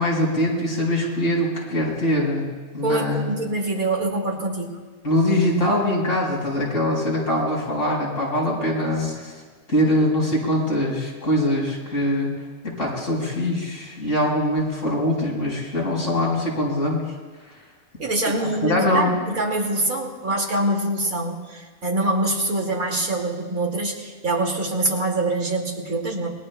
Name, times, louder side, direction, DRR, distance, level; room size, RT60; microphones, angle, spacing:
voice 1, 0.0-2.5 2.7-3.2 5.0-9.4 9.7-17.1 18.4-19.1, left 1 dB, 65° left, -3 dB, 5.1 m, -23 dB
voice 2, 2.8-4.8 8.4-8.6 18.0-26.3, right 2 dB, 75° right, -1 dB, 2.8 m, -25 dB
27.0 x 21.5 x 2.3 m, 1.4 s
omnidirectional pair, 1.5 m